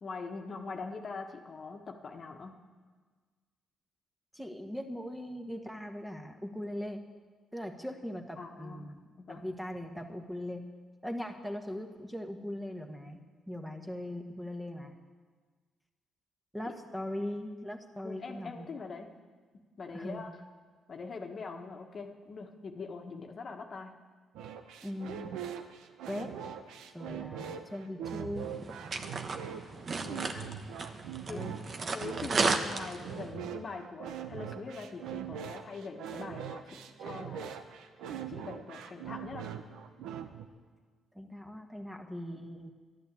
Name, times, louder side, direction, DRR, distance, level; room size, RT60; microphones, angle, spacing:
voice 1, 0.0-2.6 8.4-8.9 9.3-9.4 18.0-19.1 19.8-20.3 20.9-24.0 30.0-30.5 31.3-31.4 31.9-37.5 38.3-39.5, left 4 dB, 45° left, 4 dB, 1.3 m, -43 dB
voice 2, 4.3-7.0 7.5-9.0 9.3-10.6 11.0-13.2 13.5-14.9 16.5-18.7 19.9-20.2 24.8-25.2 26.1-26.3 26.9-28.5 31.3-31.9 41.1-42.7, left 1 dB, 5° right, 4 dB, 1.4 m, -40 dB
sound 1, 24.3-40.5, right 8 dB, 85° right, 0.9 m, -42 dB
sound 2, 28.4-33.3, right 4 dB, 45° right, 1.1 m, -34 dB
12.0 x 11.0 x 8.4 m, 1.5 s
cardioid pair, 90°, 0 cm